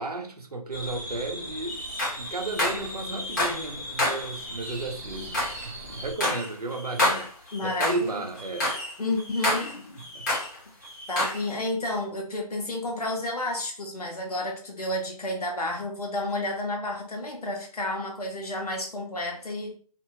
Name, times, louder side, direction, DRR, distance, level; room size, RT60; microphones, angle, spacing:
voice 1, 0.0-8.7 10.0-10.3, right 2 dB, 75° right, 3 dB, 0.8 m, -34 dB
sound 1, 0.7-6.1, equal, 25° right, 0.9 m, -38 dB
sound 2, 1.7-3.7 4.0-8.1 8.4-10.6 10.8-11.4, left 1 dB, 30° left, 1.2 m, -29 dB
voice 2, 7.5-8.2 9.0-10.0 11.1-19.8, left 1 dB, 75° left, 0 dB, 0.9 m, -31 dB
2.9 x 2.6 x 2.7 m, 0.43 s
figure-of-eight pair, 175°, 20 cm